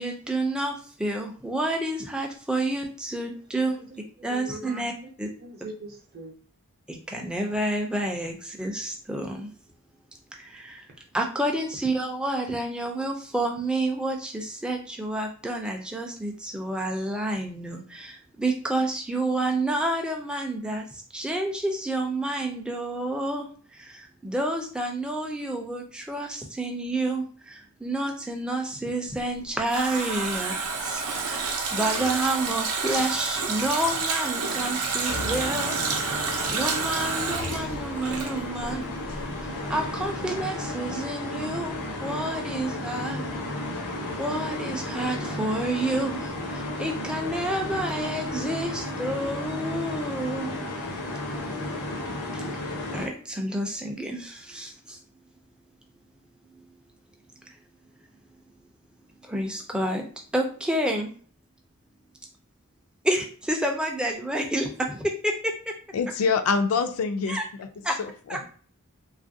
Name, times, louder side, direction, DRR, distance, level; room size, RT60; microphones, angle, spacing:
voice 1, 0.0-3.8 4.2-4.9 5.2-5.3 6.9-9.5 10.3-10.9 11.1-23.5 23.7-35.8 36.0-39.0 39.4-43.3 44.2-50.7 52.3-52.4 52.9-55.0 56.5-56.6 59.2-60.0 60.3-61.1 63.0-65.7 67.3-67.4 67.8-68.0 68.3-68.5, right 1 dB, 5° right, 2 dB, 0.3 m, -29 dB
voice 2, 3.8-4.7 5.0-5.1 5.4-6.3, right 2 dB, 45° right, 1 dB, 0.6 m, -41 dB
Water tap faucet, 29.2-38.8 39.1-39.2, right 4 dB, 85° right, 0.6 m, -29 dB
sound 1, 35.1-53.1, left 1 dB, 90° left, 0.8 m, -33 dB
voice 3, 65.9-67.7 68.0-68.4, left 5 dB, 70° left, 8 dB, 0.4 m, -26 dB
2.9 x 2.4 x 2.6 m, 0.44 s
head